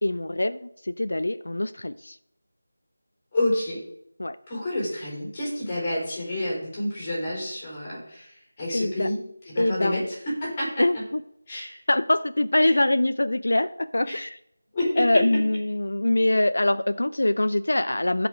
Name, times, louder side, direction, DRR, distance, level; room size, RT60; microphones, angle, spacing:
voice 1, 0.0-2.2 4.2-4.4 8.7-9.1 9.6-10.1 10.8-11.2 11.9-14.4 15.0-18.3, left 1 dB, 85° left, 13 dB, 0.5 m, -24 dB
voice 2, 3.3-3.8 4.5-9.2 9.5-10.0 10.4-10.8 11.5-11.8 12.6-12.8 14.1-14.2 14.7-15.0, left 1 dB, 15° left, -4 dB, 3.7 m, -29 dB
15.0 x 5.1 x 4.9 m, 0.77 s
figure-of-eight pair, 175°, 0 cm